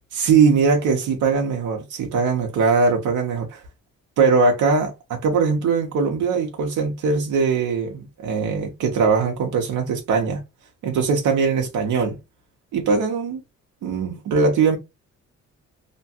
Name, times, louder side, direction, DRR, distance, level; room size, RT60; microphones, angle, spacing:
voice 1, 0.1-3.6 4.2-10.4 10.8-12.2 12.7-13.4 13.8-14.8, right 5 dB, 80° right, 0.9 m, -21 dB
3.0 x 2.2 x 2.8 m
cardioid pair, 90°, 30 cm